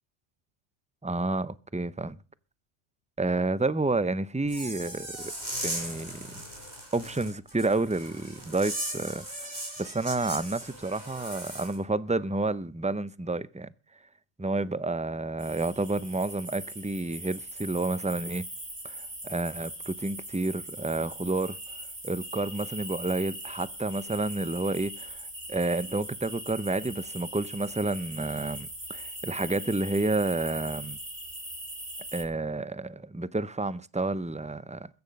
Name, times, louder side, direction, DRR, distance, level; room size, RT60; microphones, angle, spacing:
voice 1, 1.0-2.2 3.2-5.3 5.6-6.4 6.9-13.7 14.4-18.4 18.8-21.6 22.0-31.0 32.1-34.9, right 2 dB, 10° right, 0.4 m, -30 dB
sound 1, 4.4-11.8, right 1 dB, 35° right, 4.7 m, -38 dB
sound 2, 15.4-32.2, right 1 dB, 60° right, 5.4 m, -41 dB
21.0 x 9.6 x 5.3 m
omnidirectional pair, 1.2 m